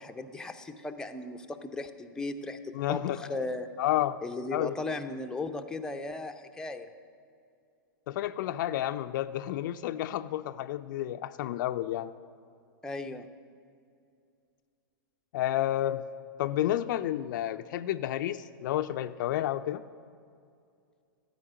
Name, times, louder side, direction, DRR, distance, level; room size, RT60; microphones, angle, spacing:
voice 1, 0.0-3.7 4.2-6.9 12.8-13.3, left 2 dB, 5° left, 5 dB, 0.5 m, -37 dB
voice 2, 2.7-3.4 3.8-4.2 4.5-4.7 8.1-12.1 15.3-16.0 16.4-19.8, left 13 dB, 60° left, 11 dB, 0.4 m, -30 dB
13.0 x 5.0 x 7.9 m, 2.4 s
hypercardioid pair, 115°, 12 cm